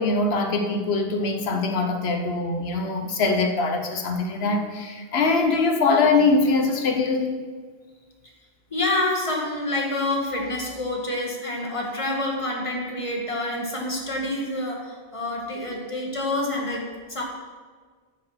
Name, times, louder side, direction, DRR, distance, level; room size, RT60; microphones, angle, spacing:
voice 1, 0.0-7.4, left 3 dB, 80° left, 4 dB, 1.3 m, -22 dB
voice 2, 8.7-17.2, left 1 dB, 30° left, 0 dB, 1.7 m, -27 dB
10.5 x 6.8 x 5.7 m, 1.5 s
omnidirectional pair, 1.0 m